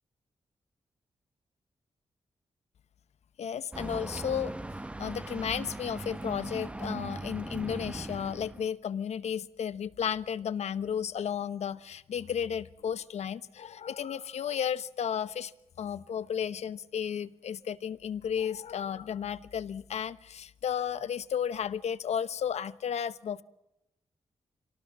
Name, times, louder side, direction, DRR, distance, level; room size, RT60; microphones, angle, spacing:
voice 1, 3.4-4.5 5.0-15.5 15.8-23.4, left 8 dB, 85° left, 15 dB, 1.0 m, -33 dB
sound 1, 3.7-8.7, right 1 dB, 10° right, 0.8 m, -39 dB
26.5 x 18.5 x 7.3 m, 0.90 s
wide cardioid pair, 155°, 11 cm